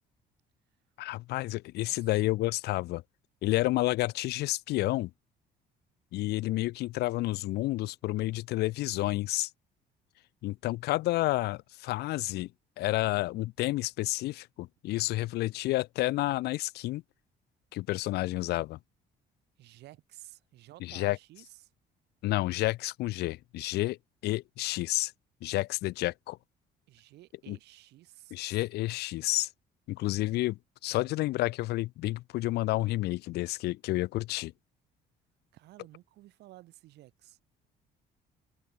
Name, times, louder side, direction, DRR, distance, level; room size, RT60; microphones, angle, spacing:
voice 1, 1.0-3.0 3.4-5.1 6.1-9.5 10.4-12.5 12.8-17.0 17.7-18.8 20.8-21.2 22.2-24.0 24.2-25.1 25.4-26.4 27.5-27.6 28.3-29.5 29.9-34.5, left 18 dB, 75° left, 0.5 m, -30 dB
voice 2, 1.8-2.2 19.6-21.7 26.9-28.4 35.5-37.4, right 16 dB, 80° right, 7.0 m, -53 dB
cardioid pair, 110°, 17 cm